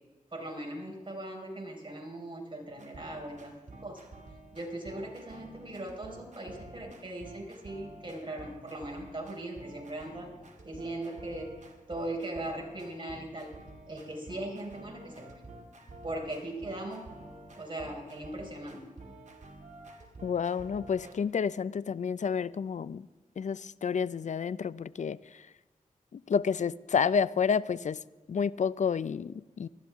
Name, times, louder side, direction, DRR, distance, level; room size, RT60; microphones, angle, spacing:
voice 1, 0.3-3.5 3.8-4.1 4.5-10.3 10.6-11.5 11.9-13.5 13.9-15.4 16.0-17.1 17.6-18.8, right 1 dB, 35° right, 4.7 m, -39 dB
sound 1, 2.7-21.1, right 2 dB, 55° right, 2.5 m, -50 dB
voice 2, 20.2-23.1 23.4-25.4 26.1-28.0 28.3-29.7, left 6 dB, 55° left, 0.4 m, -30 dB
19.0 x 13.0 x 3.6 m
cardioid pair, 55°, 14 cm